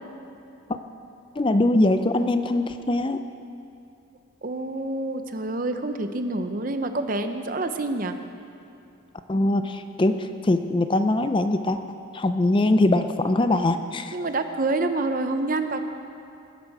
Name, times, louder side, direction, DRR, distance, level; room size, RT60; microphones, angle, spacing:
voice 1, 1.4-3.2 9.3-14.1, left 2 dB, 25° left, 9 dB, 0.4 m, -22 dB
voice 2, 4.4-8.2 14.1-15.8, right 2 dB, 40° right, 8 dB, 0.7 m, -27 dB
20.0 x 11.0 x 4.8 m, 2.8 s
head